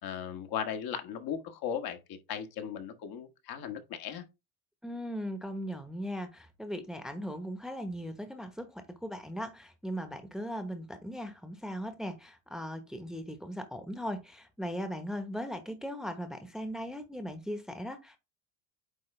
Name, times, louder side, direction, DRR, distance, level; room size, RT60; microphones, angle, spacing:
voice 1, 0.0-4.2, left 8 dB, 55° left, 1.5 m, -37 dB
voice 2, 4.8-18.2, equal, ahead, 1.0 m, -38 dB
9.1 x 3.2 x 3.3 m
supercardioid pair, 95°, 44 cm